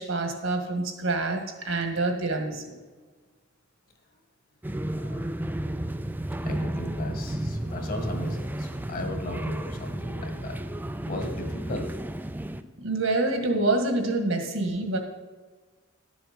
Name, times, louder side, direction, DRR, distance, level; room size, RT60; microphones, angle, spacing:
voice 1, 0.0-2.6 12.8-15.0, right 2 dB, 70° right, 4 dB, 1.6 m, -26 dB
sound 1, 4.6-12.6, right 1 dB, 10° right, 0.4 m, -32 dB
voice 2, 4.9-5.3 6.4-10.5 11.0-11.9, left 1 dB, 45° left, 3 dB, 1.9 m, -36 dB
11.5 x 7.3 x 5.2 m, 1.4 s
head